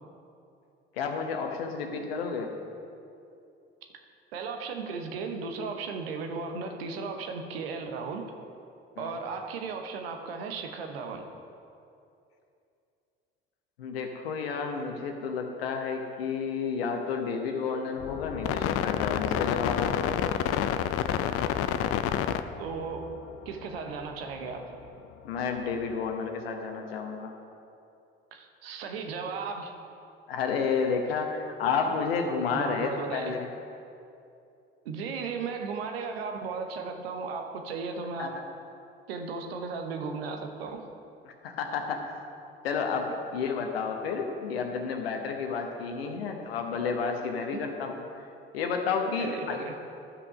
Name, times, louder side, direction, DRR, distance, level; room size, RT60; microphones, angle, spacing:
voice 1, 0.9-2.5 9.0-9.2 13.8-20.1 25.2-27.3 30.3-33.5 38.2-38.3 41.3-42.0 42.6-48.3 48.5-49.6, left 5 dB, 80° left, 4 dB, 1.0 m, -31 dB
voice 2, 4.3-8.3 9.0-11.3 22.2-23.1 23.5-24.7 28.3-29.8 32.5-33.3 34.8-38.4 39.1-40.9 46.0-46.2 47.5-47.6 49.2-49.7, right 5 dB, 75° right, 4 dB, 0.9 m, -36 dB
sound 1, 18.0-24.6 24.8-24.9, left 10 dB, 50° left, 0.5 m, -29 dB
12.5 x 6.0 x 5.0 m, 2.6 s
figure-of-eight pair, 55°, 30 cm